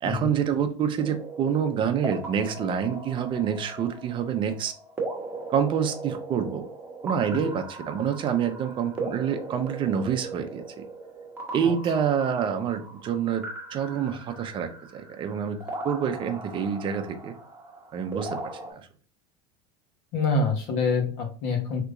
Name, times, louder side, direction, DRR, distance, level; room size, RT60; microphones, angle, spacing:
voice 1, 0.0-4.7 5.5-6.7 7.0-10.8 11.5-17.3 17.9-18.9, right 8 dB, 35° right, 7 dB, 0.6 m, -27 dB
sound 1, 1.0-18.7, right 2 dB, 15° right, 1.0 m, -39 dB
voice 2, 20.1-21.8, left 3 dB, 65° left, 3 dB, 1.2 m, -26 dB
3.4 x 2.9 x 2.5 m, 0.41 s
supercardioid pair, 125°, 15 cm